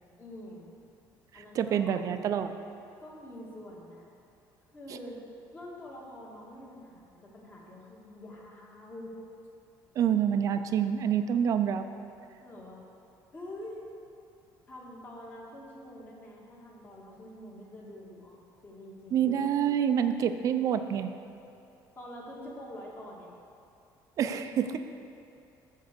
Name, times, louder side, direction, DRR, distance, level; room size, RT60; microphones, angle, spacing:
voice 1, 0.2-0.7 1.3-2.0 3.0-4.1 4.7-5.2 5.5-9.2 12.4-12.8 13.3-13.8 14.7-19.3 22.0-23.3, left 1 dB, 25° left, -3 dB, 1.9 m, -46 dB
voice 2, 1.3-2.6 10.0-11.8 19.1-21.1 24.2-24.8, right 8 dB, 45° right, 9 dB, 0.5 m, -27 dB
14.0 x 4.6 x 6.6 m, 2.6 s
cardioid pair, 165°, 8 cm